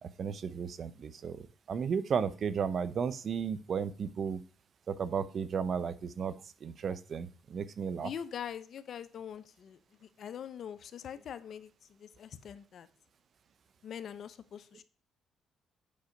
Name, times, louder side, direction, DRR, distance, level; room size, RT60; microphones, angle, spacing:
voice 1, 0.0-4.4 4.9-6.3 6.6-8.1, right 6 dB, 55° right, 14 dB, 0.9 m, -34 dB
voice 2, 8.0-12.9 13.8-14.8, left 8 dB, 60° left, 13 dB, 0.8 m, -43 dB
8.8 x 5.8 x 5.2 m, 0.38 s
cardioid pair, 90°, 0 cm